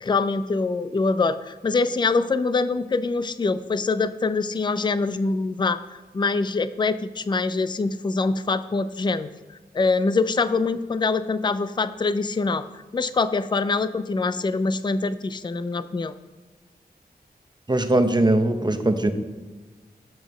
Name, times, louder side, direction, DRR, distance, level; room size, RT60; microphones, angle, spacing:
voice 1, 0.0-12.6 12.9-16.1, left 3 dB, 25° left, 13 dB, 0.4 m, -24 dB
voice 2, 17.7-19.1, right 2 dB, 25° right, 7 dB, 0.8 m, -20 dB
7.2 x 6.2 x 6.0 m, 1.3 s
wide cardioid pair, 70°, 17 cm